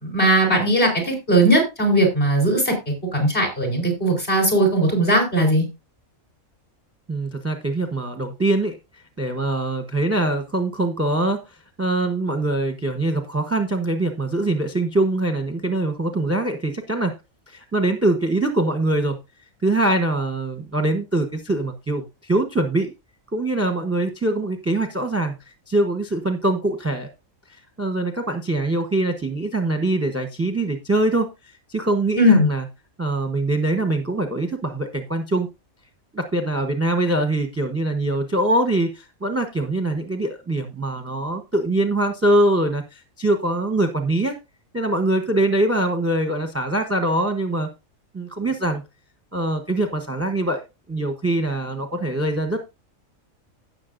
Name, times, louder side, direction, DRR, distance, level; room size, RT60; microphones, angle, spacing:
voice 1, 0.0-2.7 3.1-5.6 32.2-32.5, right 1 dB, 40° left, 2 dB, 4.5 m, -18 dB
voice 2, 7.1-8.8 9.2-17.1 17.5-19.2 19.6-22.9 23.3-25.3 25.7-27.1 27.5-31.3 31.7-32.6 33.0-35.5 36.1-44.4 44.7-47.7 48.1-48.8 49.3-50.6 50.9-52.6, right 2 dB, 10° right, 6 dB, 0.9 m, -23 dB
16.5 x 6.6 x 2.6 m, 0.25 s
omnidirectional pair, 1.4 m